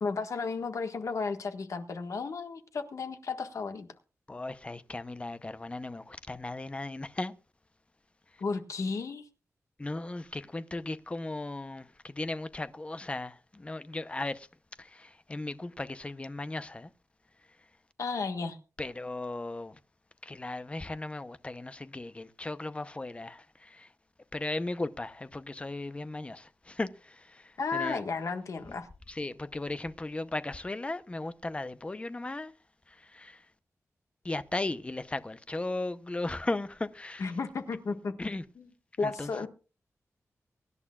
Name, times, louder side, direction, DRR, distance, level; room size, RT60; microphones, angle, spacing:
voice 1, 0.0-3.9 8.4-9.3 18.0-18.6 27.6-28.9 37.2-38.1 38.6-38.7 39.0-39.5, left 4 dB, 75° left, 1.5 m, -33 dB
voice 2, 4.3-7.3 9.8-14.5 14.8-16.9 18.8-19.8 20.2-23.9 24.3-28.0 29.1-32.5 32.9-33.4 34.2-37.2 38.2-38.4 39.0-39.5, left 2 dB, 20° left, 0.7 m, -36 dB
23.5 x 11.0 x 2.4 m
wide cardioid pair, 145°, 5 cm